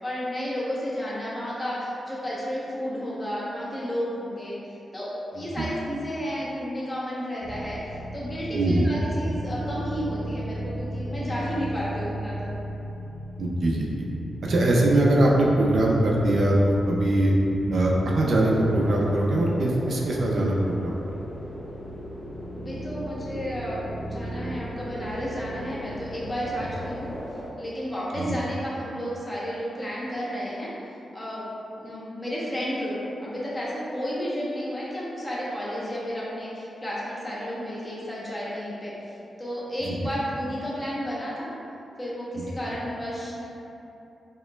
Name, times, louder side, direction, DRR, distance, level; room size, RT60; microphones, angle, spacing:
voice 1, 0.0-12.5 22.5-27.1 27.6-31.4 31.8-41.5 42.0-43.4, equal, 25° left, -7 dB, 0.9 m, -32 dB
sound 1, 7.4-27.2, right 1 dB, 25° right, 0.8 m, -37 dB
voice 2, 8.5-8.9 13.4-14.0 14.4-17.3 17.7-20.9 28.1-28.4 39.8-40.0 42.4-42.5, right 1 dB, 65° right, -3 dB, 0.5 m, -22 dB
sound 2, 18.3-27.5, left 1 dB, 50° left, 0.5 m, -39 dB
4.3 x 3.0 x 2.3 m, 2.9 s
wide cardioid pair, 100°, 0 cm